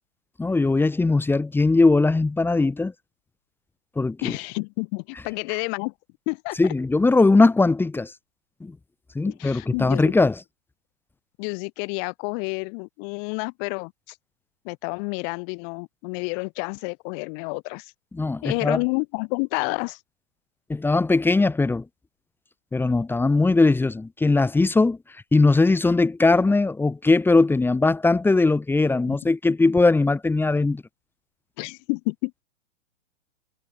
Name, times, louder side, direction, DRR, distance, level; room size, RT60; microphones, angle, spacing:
voice 1, 0.4-2.9 4.0-4.3 6.6-8.1 8.6-8.8 9.2-10.4 18.1-18.8 20.7-21.8 22.7-25.0 25.3-30.8, left 3 dB, 5° left, 1.9 m, -20 dB
voice 2, 4.2-5.9 6.3-6.6 9.3-10.2 11.4-14.2 14.6-17.9 18.4-20.0 31.6-32.4, left 40 dB or more, 35° left, 2.5 m, -29 dB
figure-of-eight pair, 115°, 38 cm